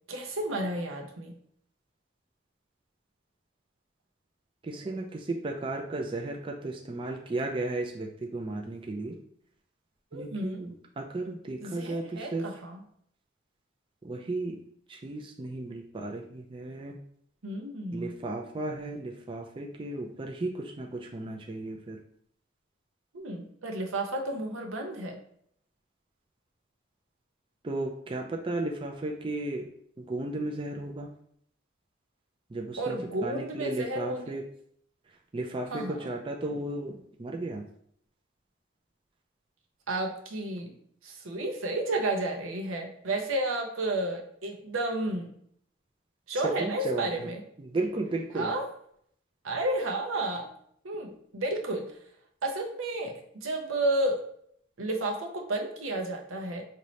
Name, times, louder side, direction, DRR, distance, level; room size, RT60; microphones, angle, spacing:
voice 1, 0.1-1.3 10.1-10.6 11.6-12.8 17.4-18.1 23.1-25.2 32.8-34.4 35.7-36.1 39.9-40.8 41.0-45.3 46.3-47.4 48.3-48.6 49.4-50.5 50.8-52.0 52.4-54.2 54.8-56.6, right 1 dB, 90° right, 2 dB, 0.8 m, -32 dB
voice 2, 4.6-9.2 10.1-12.5 14.0-14.6 14.9-17.0 17.9-22.0 27.6-29.7 30.0-31.1 32.5-33.0 33.2-34.4 35.3-37.6 46.4-47.3 47.6-48.5, right 2 dB, 25° right, 1 dB, 0.4 m, -34 dB
5.4 x 2.7 x 3.1 m, 0.67 s
head